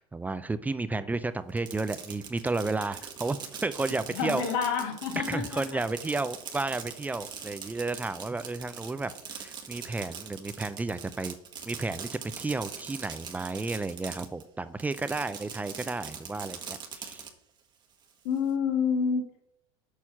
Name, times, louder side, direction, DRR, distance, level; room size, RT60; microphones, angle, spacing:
voice 1, 0.0-4.4 5.3-11.4 11.7-12.1 12.4-17.2, right 3 dB, 10° right, 12 dB, 0.4 m, -32 dB
Fireworks, 1.5-14.4 14.8-17.3, right 6 dB, 30° right, 1.1 m, -42 dB
voice 2, 4.1-5.8 18.2-19.4, left 6 dB, 75° left, 4 dB, 1.1 m, -29 dB
6.5 x 4.3 x 5.6 m, 0.73 s
supercardioid pair, 115°, 14 cm